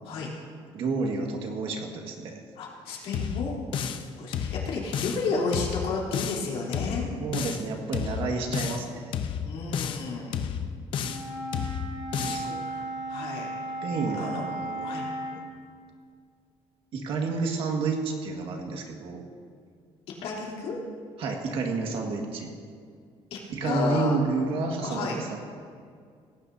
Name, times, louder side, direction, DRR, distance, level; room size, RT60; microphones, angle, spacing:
voice 1, 0.7-2.4 7.2-9.1 12.2-12.5 13.8-15.4 16.9-19.2 21.2-22.5 23.5-25.4, right 4 dB, 60° right, 2 dB, 1.9 m, -30 dB
voice 2, 2.6-3.6 4.2-7.1 8.5-8.7 9.5-10.4 12.2-13.5 14.1-14.5 14.8-15.1 20.2-20.8 23.3-24.2 24.8-25.2, left 4 dB, 70° left, -3 dB, 3.5 m, -32 dB
sound 1, 3.1-4.1 4.3-5.3 5.5-6.5 6.7-7.7 7.9-8.9 9.1-10.1 10.3-11.3 11.5-12.5, left 8 dB, 55° left, 0.8 m, -31 dB
Wind instrument woodwind instrument, 11.0-15.4, right 1 dB, 35° right, 3.9 m, -35 dB
18.0 x 17.0 x 2.8 m, 2.2 s
cardioid pair, 170°, 10 cm